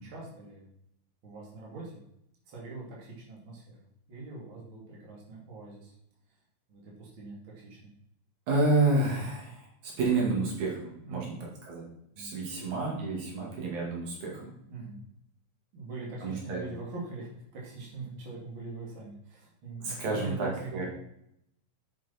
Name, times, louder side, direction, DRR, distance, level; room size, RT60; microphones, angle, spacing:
voice 1, 0.0-0.7 1.2-2.0 2.5-3.8 4.1-5.9 6.7-7.9 11.0-11.4 12.1-12.7 14.7-15.0 15.7-20.9, right 3 dB, 45° right, -3 dB, 3.1 m, -42 dB
voice 2, 8.5-11.4 11.7-11.8 12.2-14.5 16.2-16.6 19.8-20.9, right 3 dB, 80° right, -2 dB, 3.6 m, -29 dB
8.7 x 7.1 x 4.3 m, 0.75 s
omnidirectional pair, 3.3 m